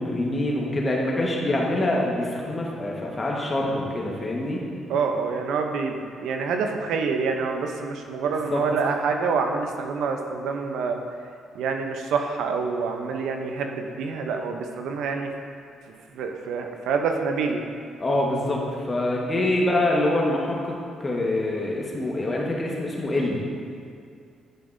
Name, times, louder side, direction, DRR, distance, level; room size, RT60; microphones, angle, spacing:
voice 1, 0.0-4.6 8.5-8.6 18.0-23.4, left 1 dB, 30° left, -2 dB, 1.3 m, -25 dB
voice 2, 4.9-11.0 11.5-15.3 16.1-17.6 19.4-19.5, right 5 dB, 85° right, 4 dB, 0.6 m, -27 dB
10.0 x 5.3 x 2.6 m, 2.3 s
cardioid pair, 90°, 0 cm